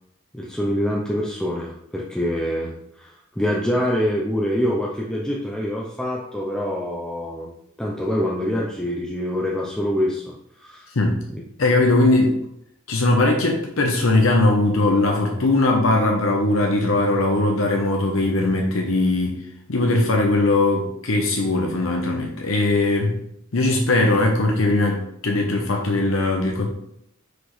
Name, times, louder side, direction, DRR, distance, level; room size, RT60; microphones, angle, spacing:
voice 1, 0.3-7.5 7.8-10.9 11.3-11.4, equal, 5° left, -3 dB, 0.6 m, -25 dB
voice 2, 11.6-12.3 12.9-19.4 19.7-23.2 23.5-26.7, left 2 dB, 75° left, 1 dB, 0.9 m, -20 dB
6.2 x 5.0 x 3.1 m, 0.73 s
head